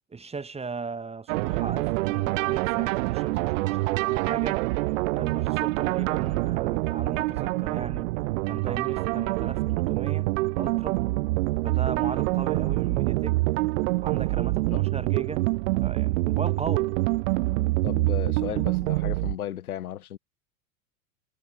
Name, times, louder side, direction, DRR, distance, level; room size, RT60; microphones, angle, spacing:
voice 1, 0.1-4.6 5.1-8.1 8.5-10.3 10.6-11.0 11.6-13.4 14.0-15.4 15.8-16.9, right 4 dB, 15° right, 2.3 m, -37 dB
sound 1, 1.3-19.4, right 21 dB, 60° right, 0.9 m, -26 dB
voice 2, 17.8-20.2, left 11 dB, 75° left, 3.2 m, -35 dB
hypercardioid pair, 100°, 44 cm